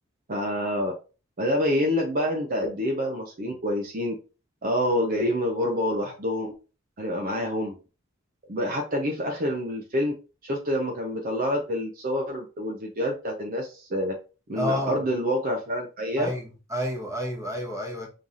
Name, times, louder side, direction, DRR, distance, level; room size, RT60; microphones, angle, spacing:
voice 1, 0.3-0.9 1.4-4.1 4.6-6.5 7.0-7.8 8.5-10.1 10.4-14.1 14.5-16.3, equal, 45° right, 0.8 m, -27 dB
voice 2, 14.5-15.0 16.2-18.1, equal, 15° right, 1.2 m, -30 dB
5.6 x 3.2 x 2.5 m
head